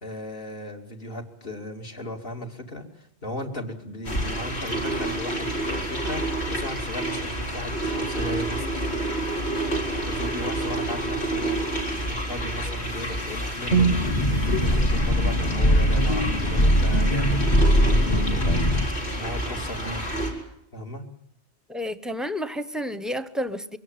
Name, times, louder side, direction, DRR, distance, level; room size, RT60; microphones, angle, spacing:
voice 1, 0.0-8.7 10.0-11.7 12.0-17.4 17.8-18.5 19.1-20.0 20.7-21.1, left 1 dB, 60° left, 2.9 m, -36 dB
sound 1, 4.0-20.3, right 1 dB, 90° left, 4.5 m, -29 dB
sound 2, 13.7-18.9, equal, 40° left, 1.3 m, -21 dB
voice 2, 21.7-23.8, equal, ahead, 0.7 m, -30 dB
23.0 x 17.0 x 9.5 m
omnidirectional pair, 1.1 m